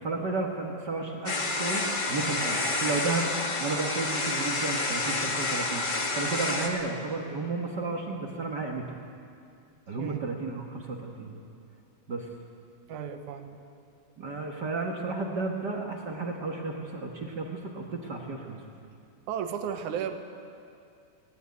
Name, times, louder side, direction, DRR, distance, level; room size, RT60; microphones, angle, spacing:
voice 1, 0.0-3.3 3.6-5.8 6.1-8.8 9.9-11.4 12.1-12.3 14.2-18.6, right 3 dB, 45° right, 1 dB, 1.5 m, -33 dB
sound 1, 1.2-6.7, left 2 dB, 75° left, 0.4 m, -29 dB
voice 2, 12.9-13.6 19.3-20.2, right 8 dB, 75° right, 7 dB, 2.5 m, -34 dB
18.0 x 17.5 x 9.6 m, 2.5 s
omnidirectional pair, 3.7 m